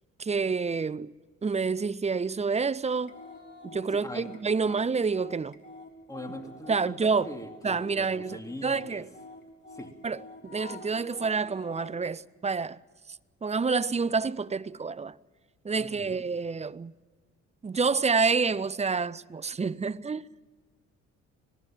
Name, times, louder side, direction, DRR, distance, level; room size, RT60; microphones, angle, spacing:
voice 1, 0.2-1.1 1.4-3.2 3.6-5.6 6.7-7.3 7.6-9.0 10.0-10.2 10.4-12.8 13.4-15.2 15.6-16.9 17.6-20.3, right 4 dB, 20° right, 0.6 m, -28 dB
sound 1, 3.0-12.0, left 2 dB, 35° left, 4.1 m, -47 dB
voice 2, 3.9-4.3 6.1-9.0 9.7-9.9 15.8-16.2, left 1 dB, 10° left, 2.6 m, -42 dB
26.0 x 19.0 x 7.4 m
cardioid pair, 90°, 30 cm